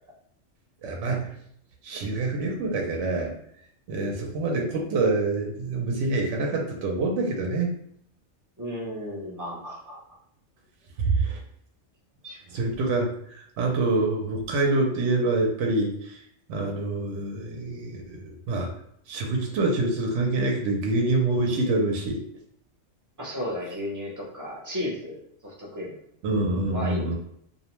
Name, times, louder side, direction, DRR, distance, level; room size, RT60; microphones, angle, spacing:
voice 1, 0.8-1.4 1.8-3.3 3.9-7.7 11.0-11.4 12.5-16.2 16.5-18.7 19.1-22.2 26.2-27.1, right 2 dB, 70° right, 1 dB, 0.8 m, -26 dB
voice 2, 8.6-10.0 12.2-12.4 23.2-25.9 26.7-27.1, left 1 dB, 25° right, -5 dB, 0.4 m, -34 dB
2.6 x 2.0 x 2.9 m, 0.70 s
omnidirectional pair, 1.3 m